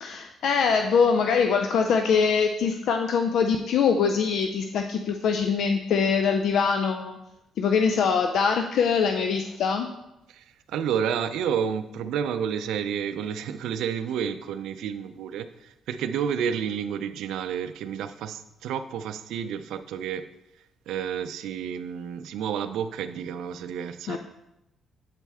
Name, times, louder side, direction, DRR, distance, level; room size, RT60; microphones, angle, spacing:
voice 1, 0.0-7.2 7.6-9.9 24.1-24.2, left 6 dB, 75° left, 5 dB, 0.4 m, -23 dB
voice 2, 10.3-20.2 20.9-24.2, right 8 dB, 85° right, 10 dB, 0.4 m, -30 dB
8.2 x 4.2 x 3.5 m, 0.89 s
cardioid pair, 90°, 0 cm